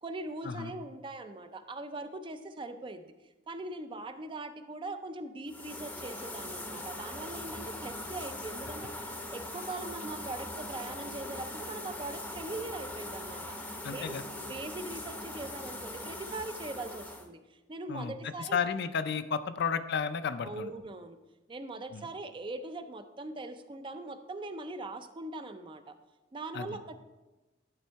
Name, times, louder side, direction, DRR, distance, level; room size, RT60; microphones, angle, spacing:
voice 1, 0.0-3.1 3.5-13.6 13.9-18.6 19.6-19.7 20.4-21.2 21.5-26.0 26.3-27.0, right 2 dB, 25° right, 9 dB, 0.4 m, -41 dB
sound 1, 5.5-17.3, left 1 dB, 10° left, 0.7 m, -41 dB
voice 2, 13.8-14.2 17.9-20.7 21.9-22.0 26.5-26.8, left 6 dB, 60° left, 11 dB, 0.4 m, -33 dB
11.0 x 4.3 x 4.5 m, 1.1 s
head